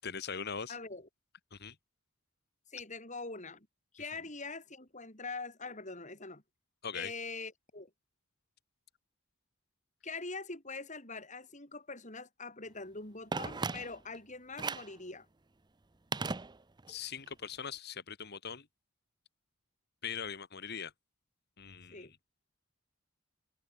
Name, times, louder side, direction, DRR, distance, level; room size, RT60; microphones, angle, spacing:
voice 1, 0.0-0.7 1.5-1.7 6.8-7.1 16.9-18.6 20.0-20.9 21.6-22.1, left 6 dB, 50° left, 1.6 m, -41 dB
voice 2, 0.7-1.1 2.7-3.7 3.9-6.4 6.9-7.9 10.0-15.3 21.9-22.1, left 3 dB, 35° left, 7.9 m, -43 dB
Telephone, 13.3-14.2 14.6-15.0 16.1-17.0 17.3-17.4, right 4 dB, 20° right, 0.6 m, -37 dB
head